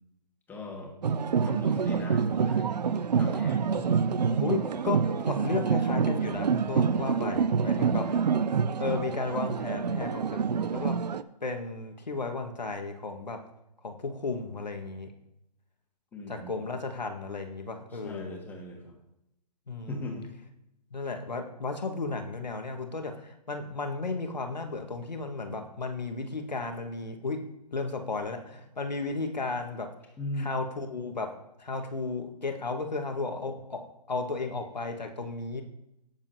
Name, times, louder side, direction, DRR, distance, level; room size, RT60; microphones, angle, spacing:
voice 1, 0.5-0.9 1.4-2.7 3.2-3.7 8.0-8.7 16.1-16.6 17.9-19.0 19.9-20.3 30.2-30.5, left 2 dB, 10° left, 0 dB, 1.8 m, -39 dB
sound 1, 1.0-11.2, right 6 dB, 75° right, 0.6 m, -27 dB
voice 2, 3.7-8.1 8.8-11.0 11.4-13.4 13.8-15.1 16.3-18.4 19.7-20.1 20.9-27.4 27.7-29.9 30.4-31.3 31.6-33.8 34.1-35.6, left 3 dB, 90° left, 4 dB, 1.6 m, -34 dB
17.0 x 7.1 x 2.8 m, 0.86 s
figure-of-eight pair, 135°, 21 cm